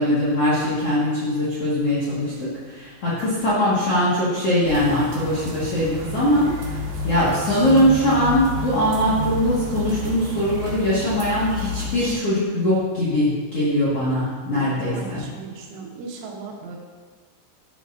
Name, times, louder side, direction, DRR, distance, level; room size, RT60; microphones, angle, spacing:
voice 1, 0.0-6.8 7.0-15.3, left 1 dB, 75° left, -9 dB, 1.4 m, -21 dB
sound 1, 4.6-12.2, left 1 dB, 70° right, 3.6 m, -30 dB
voice 2, 14.5-16.8, right 4 dB, 85° right, 0 dB, 3.7 m, -37 dB
12.0 x 8.5 x 2.5 m, 1.5 s
omnidirectional pair, 5.5 m